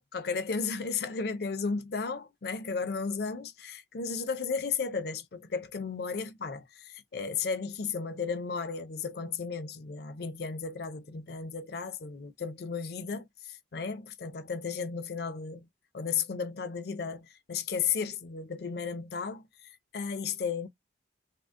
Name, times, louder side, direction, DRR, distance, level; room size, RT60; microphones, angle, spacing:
voice 1, 0.0-15.7 15.9-19.5 19.9-20.7, left 5 dB, 55° left, 0.4 m, -34 dB
3.6 x 2.0 x 2.4 m
head